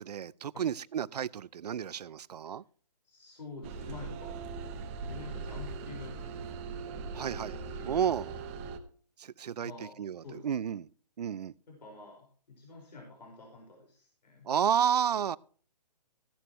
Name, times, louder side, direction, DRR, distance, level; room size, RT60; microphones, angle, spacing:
voice 1, 0.0-2.6 7.1-7.6 7.9-8.3 9.2-9.7 10.0-10.9 11.2-11.5 14.4-15.4, right 8 dB, 70° right, 0.5 m, -31 dB
voice 2, 3.0-4.4 5.0-6.6 7.7-7.9 9.6-10.5 11.7-14.5, left 3 dB, 80° left, 5.2 m, -47 dB
sound 1, 3.6-8.8, right 4 dB, 20° right, 0.9 m, -40 dB
15.0 x 11.5 x 3.1 m
hypercardioid pair, 165°, 21 cm